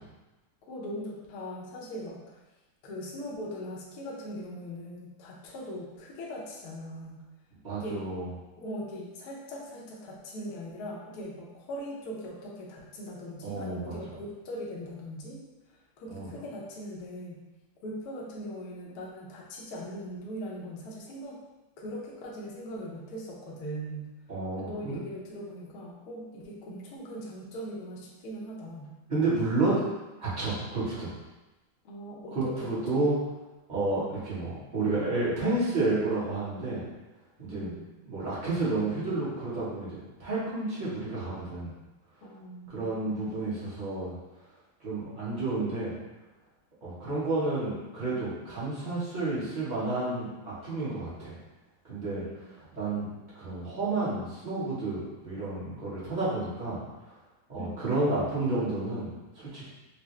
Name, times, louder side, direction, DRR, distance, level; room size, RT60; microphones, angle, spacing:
voice 1, 0.7-2.4 2.8-7.2 7.8-8.0 8.6-15.4 15.7-17.4 17.8-21.4 21.8-24.1 24.5-29.0 31.8-33.0 37.5-37.8 42.2-43.4 52.1-52.6 57.6-57.8, equal, 65° left, -3 dB, 1.1 m, -40 dB
voice 2, 7.6-8.2 13.4-13.9 16.1-16.3 24.3-25.0 29.1-29.8 30.2-31.1 32.3-33.2 33.7-36.8 37.4-37.7 38.1-41.7 42.7-44.1 44.8-45.9 46.8-50.3 50.6-51.4 51.9-52.2 52.7-53.1 53.3-56.8 57.5-59.7, right 2 dB, 30° right, -10 dB, 1.0 m, -30 dB
4.6 x 2.1 x 3.1 m, 1.1 s
omnidirectional pair, 2.1 m